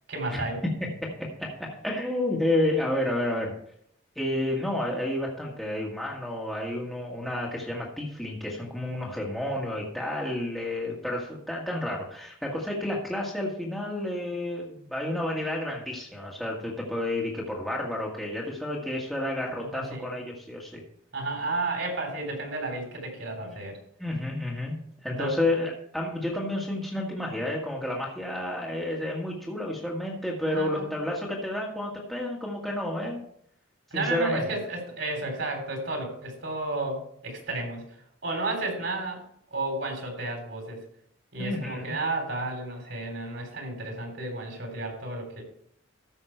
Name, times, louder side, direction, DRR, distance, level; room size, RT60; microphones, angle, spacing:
voice 1, 0.1-0.6 19.6-20.1 21.1-23.8 25.2-25.4 30.5-30.9 33.9-37.8 38.2-40.8 41.3-45.4, right 2 dB, 65° right, 2 dB, 3.4 m, -32 dB
voice 2, 0.8-3.5 4.1-20.8 23.4-23.6 24.0-24.8 25.0-33.2 33.9-34.4 41.4-41.9, left 1 dB, ahead, -4 dB, 1.6 m, -30 dB
14.0 x 5.8 x 4.5 m, 0.68 s
head